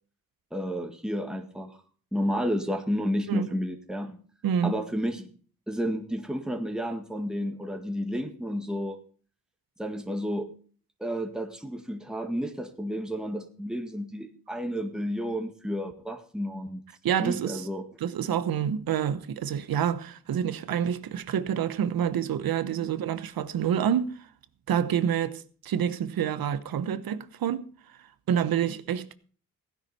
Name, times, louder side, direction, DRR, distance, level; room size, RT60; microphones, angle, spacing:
voice 1, 0.5-1.8 2.1-4.2 4.6-5.3 5.7-9.0 9.8-10.5 11.0-16.8 17.2-17.9, equal, ahead, 1.8 m, -31 dB
voice 2, 17.0-17.7 18.0-24.3 24.7-27.7 28.3-29.1, right 9 dB, 90° right, 1.0 m, -28 dB
16.0 x 10.5 x 4.2 m
cardioid pair, 75°, 35 cm